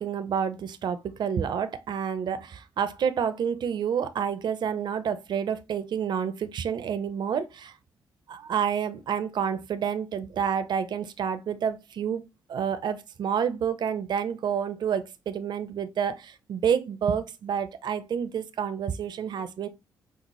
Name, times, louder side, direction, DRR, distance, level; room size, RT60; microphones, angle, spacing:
voice 1, 0.0-7.7 8.3-19.7, right 7 dB, 55° right, 0.5 m, -29 dB
5.3 x 2.0 x 3.0 m
hypercardioid pair, 40°, 9 cm